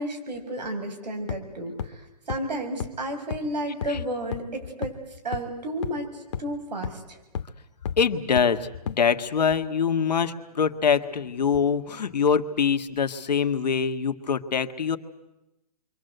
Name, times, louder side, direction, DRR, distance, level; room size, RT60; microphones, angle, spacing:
voice 1, 0.0-4.9 5.2-7.2, right 1 dB, 85° right, 4 dB, 7.0 m, -32 dB
sound 1, 1.3-1.4 1.8-1.9 2.3-2.4 2.8-2.9 3.3-3.4 3.8-3.9 4.3-4.4 4.8-4.9 5.3-5.4 5.8-5.9 6.3-6.4 6.8-6.9 7.3-7.4 7.9-8.0 8.4-8.5 8.9-9.0, left 8 dB, 45° left, 1.4 m, -31 dB
voice 2, 8.0-15.0, left 6 dB, 85° left, 7 dB, 1.8 m, -24 dB
29.0 x 24.0 x 8.0 m, 0.95 s
hypercardioid pair, 170°, 21 cm